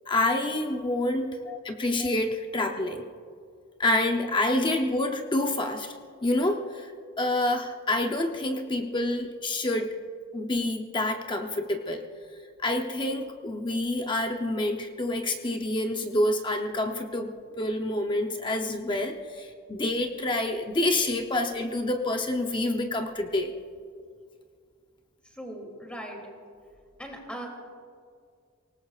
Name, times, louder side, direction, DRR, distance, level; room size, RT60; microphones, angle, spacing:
voice 1, 0.1-3.0 3.8-5.9 6.2-6.9 7.2-10.0 10.3-12.0 12.6-19.2 19.7-23.5, left 1 dB, 20° left, 4 dB, 0.7 m, -27 dB
voice 2, 25.2-26.2 27.0-27.5, right 1 dB, 5° left, 0 dB, 2.7 m, -40 dB
24.0 x 19.0 x 2.4 m, 2.2 s
head